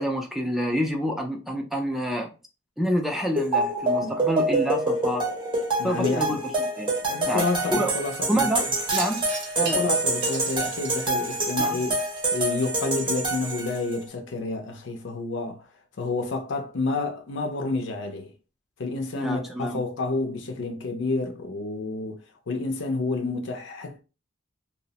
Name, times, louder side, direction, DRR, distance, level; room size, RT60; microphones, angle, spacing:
voice 1, 0.0-2.3 2.8-5.3 5.8-6.9 7.3-7.4 7.7-7.9 8.3-8.6 8.9-9.2 9.6-9.8 11.6-11.8 19.2-19.8, equal, ahead, 0.3 m, -27 dB
sound 1, 3.4-14.0, right 2 dB, 25° right, 0.7 m, -26 dB
voice 2, 5.8-6.4 7.0-8.7 9.6-12.0 12.3-15.7 16.0-18.3 18.8-24.0, left 3 dB, 70° left, 0.5 m, -29 dB
Wind chime, 8.9-13.5, right 4 dB, 65° right, 0.6 m, -38 dB
2.8 x 2.0 x 2.8 m
head